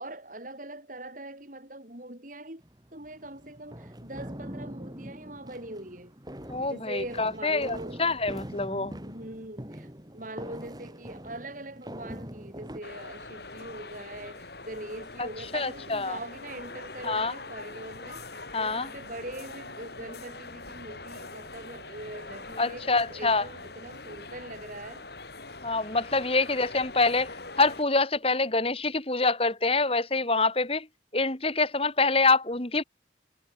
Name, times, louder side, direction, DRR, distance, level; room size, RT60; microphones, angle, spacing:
voice 1, 0.0-2.6 2.9-6.1 6.7-8.0 9.0-9.9 10.1-25.0, right 1 dB, 45° right, 4.9 m, -42 dB
sound 1, 2.6-12.8, equal, 20° right, 2.8 m, -43 dB
voice 2, 6.5-9.0 15.5-16.2 17.0-17.3 18.5-18.9 22.6-23.4 25.6-27.3 27.6-30.9 31.1-32.8, left 3 dB, 30° left, 2.3 m, -26 dB
sound 2, 12.8-27.8, left 3 dB, 55° left, 3.8 m, -43 dB
head